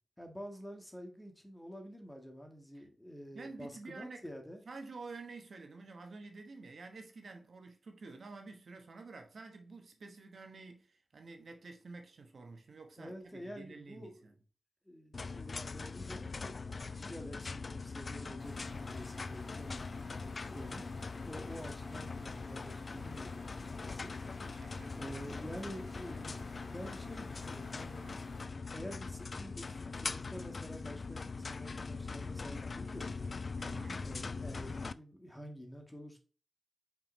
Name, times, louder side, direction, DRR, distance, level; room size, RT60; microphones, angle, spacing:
voice 1, 0.2-4.6 13.0-14.3 14.8-19.8 20.5-20.9 21.2-24.1 24.9-28.0 28.7-33.4 34.0-36.2, equal, 10° left, 1.6 m, -48 dB
voice 2, 3.3-4.2 4.6-14.3 24.4-25.3 28.0-28.2 33.6-34.1, right 3 dB, 70° right, 1.1 m, -50 dB
sound 1, 15.1-34.9, left 4 dB, 50° left, 0.3 m, -42 dB
sound 2, 18.4-28.5, left 2 dB, 65° left, 1.7 m, -52 dB
5.7 x 5.3 x 3.1 m
wide cardioid pair, 100°, 0 cm